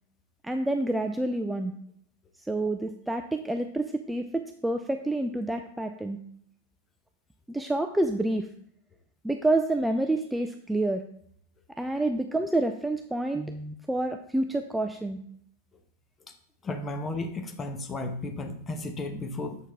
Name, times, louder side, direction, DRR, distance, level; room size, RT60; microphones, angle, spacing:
voice 1, 0.4-1.7 2.5-6.2 7.5-8.5 9.2-11.0 11.8-15.2, right 2 dB, 5° right, 6 dB, 0.4 m, -28 dB
voice 2, 16.6-19.6, left 2 dB, 20° left, 6 dB, 0.8 m, -34 dB
7.0 x 4.5 x 3.4 m, 0.65 s
figure-of-eight pair, 90°, 0 cm